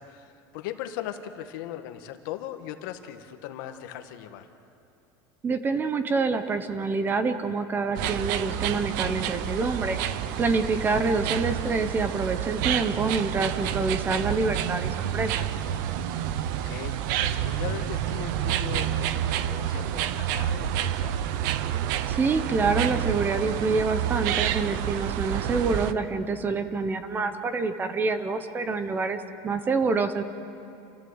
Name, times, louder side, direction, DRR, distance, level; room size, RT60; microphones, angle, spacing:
voice 1, 0.0-4.5 10.1-10.4 16.5-21.2, left 11 dB, 65° left, 8 dB, 1.5 m, -39 dB
voice 2, 5.4-10.0 10.4-15.4 22.1-30.2, right 4 dB, 15° right, 10 dB, 0.8 m, -27 dB
sound 1, 7.9-25.9, right 11 dB, 65° right, 0.8 m, -29 dB
28.5 x 14.5 x 8.0 m, 2.7 s
cardioid pair, 170°, 12 cm